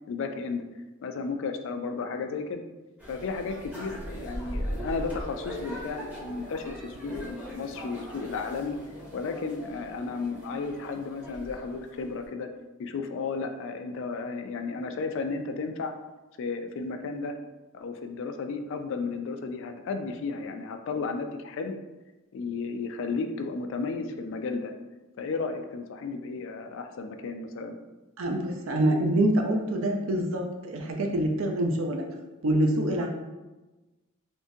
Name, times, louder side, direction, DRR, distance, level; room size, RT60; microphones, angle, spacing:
voice 1, 0.1-0.7 1.0-2.6 3.1-8.8 9.1-12.5 12.8-15.9 16.4-17.4 17.7-21.8 22.3-24.7 25.2-27.8, left 4 dB, 65° left, 7 dB, 0.3 m, -33 dB
sound 1, 3.0-12.3, equal, 5° right, 0.6 m, -39 dB
voice 2, 28.2-32.0 32.4-33.1, right 1 dB, 70° right, 2 dB, 0.5 m, -25 dB
3.6 x 2.6 x 2.6 m, 1.1 s
head